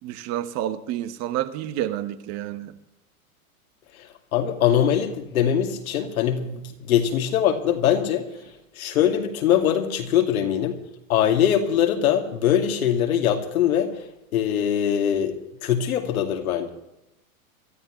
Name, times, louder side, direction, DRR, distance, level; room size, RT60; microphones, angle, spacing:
voice 1, 0.0-2.8, right 12 dB, 35° right, 1.2 m, -29 dB
voice 2, 4.0-8.3 8.8-10.8 11.1-14.0 14.3-16.7, left 9 dB, 70° left, 2.5 m, -22 dB
26.5 x 13.0 x 3.1 m
hypercardioid pair, 125°, 43 cm